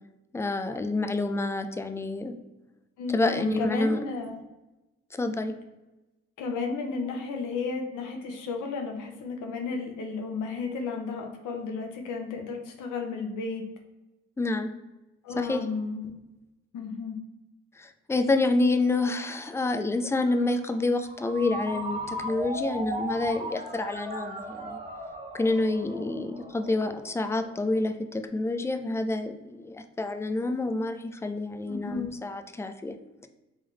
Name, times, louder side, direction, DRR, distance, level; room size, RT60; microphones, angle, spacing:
voice 1, 0.3-2.3 3.1-4.0 5.1-5.5 14.4-14.7 15.4-15.6 17.8-24.8 25.3-32.9, left 2 dB, 10° left, 7 dB, 0.3 m, -28 dB
voice 2, 3.0-4.4 6.4-13.6 15.2-16.1 16.7-17.2 31.7-32.1, left 4 dB, 85° left, 2 dB, 0.8 m, -33 dB
Ringtone, 20.3-27.7, right 1 dB, 20° right, 0.7 m, -37 dB
3.5 x 3.4 x 3.3 m, 1.0 s
cardioid pair, 90°, 30 cm